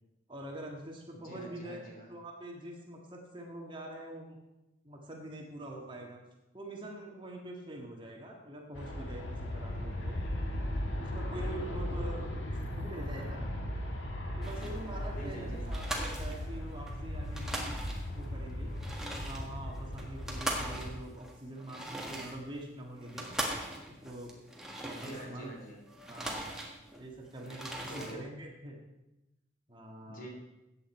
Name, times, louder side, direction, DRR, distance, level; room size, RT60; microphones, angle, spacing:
voice 1, 0.3-1.8 2.1-4.4 4.8-6.2 6.5-10.2 10.9-13.4 14.4-17.8 18.1-18.7 19.1-23.3 23.9-24.4 24.8-25.5 26.1-26.5 27.0-28.8 29.7-30.3, right 1 dB, 25° right, 0 dB, 1.8 m, -45 dB
voice 2, 1.2-2.1 15.2-15.7 24.9-25.8 27.9-28.2 30.1-30.3, right 1 dB, 50° left, 0 dB, 3.1 m, -46 dB
Aircraft, 8.7-20.9, left 1 dB, 80° left, 1.7 m, -37 dB
sound 1, 14.4-14.9 15.3-15.4 15.7-16.9 17.2-18.3 18.7-25.5 25.9-27.1 27.4-28.2, right 1 dB, 5° right, 1.7 m, -40 dB
14.5 x 8.9 x 4.5 m, 0.95 s
head